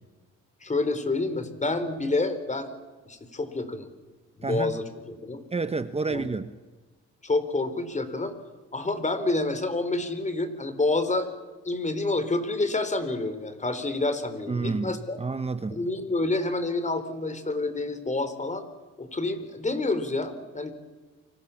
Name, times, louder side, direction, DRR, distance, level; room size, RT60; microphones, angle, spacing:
voice 1, 0.6-2.7 3.1-3.9 4.4-5.4 6.1-6.3 7.2-8.3 8.7-11.3 11.6-15.2 15.7-18.6 19.0-20.7, left 2 dB, 25° left, 4.2 m, -28 dB
voice 2, 4.4-4.8 5.5-6.5 14.5-15.8, right 4 dB, 20° right, 1.1 m, -30 dB
29.5 x 25.0 x 7.3 m
cardioid pair, 90°, 30 cm